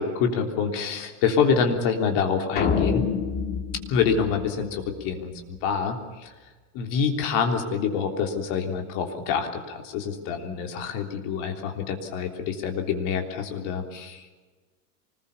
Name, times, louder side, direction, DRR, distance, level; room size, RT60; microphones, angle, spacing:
voice 1, 0.0-3.1 3.9-6.3 6.7-14.3, left 6 dB, 45° left, 4 dB, 3.4 m, -26 dB
sound 1, 2.6-5.0, left 6 dB, 25° left, 2.0 m, -27 dB
25.0 x 20.5 x 7.0 m, 1.3 s
supercardioid pair, 170°, 36 cm